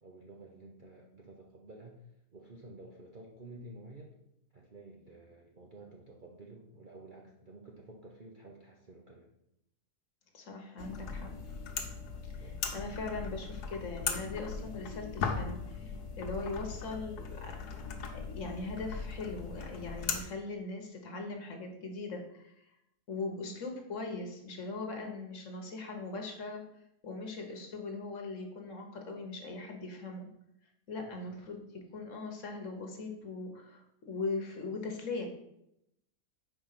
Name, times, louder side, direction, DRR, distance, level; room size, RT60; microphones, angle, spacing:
voice 1, 0.0-2.0 2.3-4.1 4.5-9.3 12.2-12.6 31.0-31.2, right 2 dB, 45° right, -1 dB, 0.7 m, -52 dB
voice 2, 10.3-11.3 12.3-17.8 18.1-22.5 23.1-26.6 27.0-30.3 30.9-35.3, left 3 dB, 55° left, 3 dB, 1.3 m, -40 dB
sound 1, 10.8-20.2, left 5 dB, 85° left, 1.4 m, -39 dB
5.0 x 4.6 x 5.6 m, 0.81 s
omnidirectional pair, 1.6 m